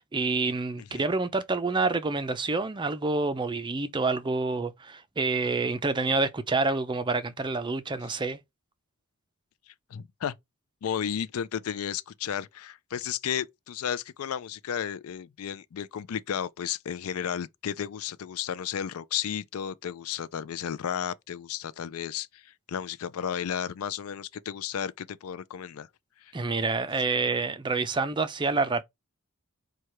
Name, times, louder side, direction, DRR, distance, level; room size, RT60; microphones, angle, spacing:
voice 1, 0.0-8.4 26.3-28.8, right 3 dB, 20° right, 0.4 m, -28 dB
voice 2, 9.7-10.3 10.8-25.9 26.2-26.3, left 8 dB, 65° left, 0.4 m, -33 dB
4.7 x 2.3 x 4.2 m
head